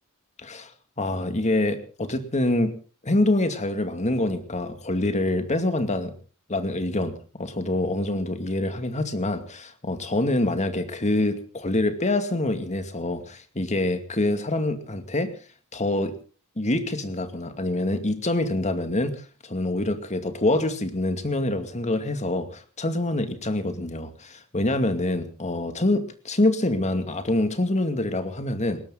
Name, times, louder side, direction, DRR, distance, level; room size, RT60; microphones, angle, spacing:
voice 1, 0.4-0.7 1.0-2.8 3.0-6.1 6.5-15.3 15.7-16.1 16.6-28.8, left 1 dB, 30° left, 8 dB, 2.4 m, -26 dB
20.5 x 18.0 x 4.0 m, 0.38 s
head